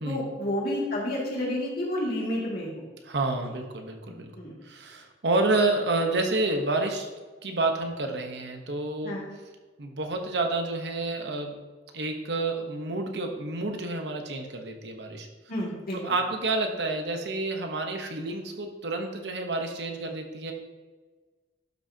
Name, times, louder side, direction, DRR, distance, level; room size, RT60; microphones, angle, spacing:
voice 1, 0.0-2.9 4.1-4.5 9.0-9.3 15.5-16.2, left 1 dB, 55° left, -5 dB, 2.5 m, -30 dB
voice 2, 3.1-4.3 4.6-7.1 7.4-9.2 9.8-11.5 11.9-15.3 16.0-20.5, right 2 dB, 65° right, 4 dB, 1.0 m, -29 dB
11.5 x 6.2 x 2.8 m, 1.3 s
head